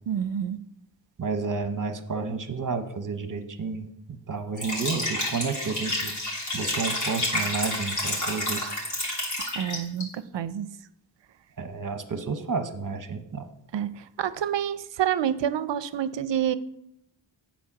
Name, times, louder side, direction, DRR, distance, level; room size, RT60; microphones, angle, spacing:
voice 1, 0.1-0.6 9.5-10.7 13.7-16.6, right 9 dB, 65° right, 15 dB, 0.6 m, -28 dB
voice 2, 1.2-3.9 4.3-6.1 6.5-8.7 11.6-13.5, right 4 dB, 40° right, 8 dB, 0.9 m, -31 dB
Liquid, 4.5-10.0, left 1 dB, 40° left, 2.9 m, -29 dB
8.5 x 4.4 x 5.9 m, 0.79 s
wide cardioid pair, 80°, 46 cm